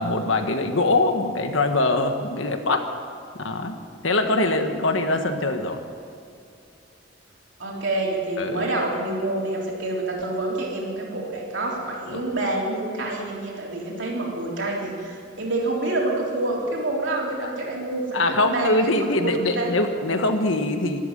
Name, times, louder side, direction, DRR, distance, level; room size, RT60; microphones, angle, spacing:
voice 1, 0.0-2.9 3.4-3.8 4.0-5.8 8.4-8.6 12.1-12.2 17.4-17.5 18.1-21.0, left 2 dB, 90° left, 6 dB, 1.4 m, -23 dB
voice 2, 7.6-19.7, right 2 dB, 70° right, -2 dB, 3.6 m, -27 dB
13.0 x 12.5 x 8.9 m, 2.4 s
head